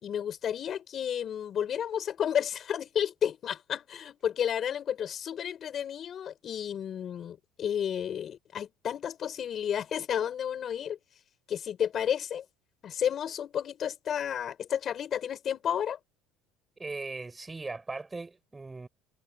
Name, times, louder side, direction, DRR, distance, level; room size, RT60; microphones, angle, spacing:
voice 1, 0.0-11.0 11.5-12.4 12.8-16.0, left 9 dB, 30° left, 4.6 m, -32 dB
voice 2, 16.8-18.9, right 3 dB, 10° right, 6.4 m, -39 dB
cardioid pair, 175°, 0 cm